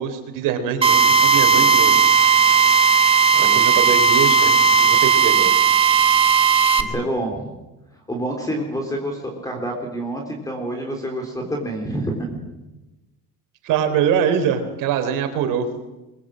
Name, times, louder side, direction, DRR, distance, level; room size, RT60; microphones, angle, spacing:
voice 1, 0.0-2.0 3.3-5.6 13.6-15.7, right 7 dB, 65° right, 7 dB, 3.8 m, -23 dB
Drill, 0.8-6.8, right 5 dB, 15° right, 1.6 m, -15 dB
voice 2, 6.4-7.5 8.1-12.4, right 1 dB, 10° left, 2 dB, 3.7 m, -28 dB
24.5 x 21.0 x 7.6 m, 1.0 s
cardioid pair, 145°, 34 cm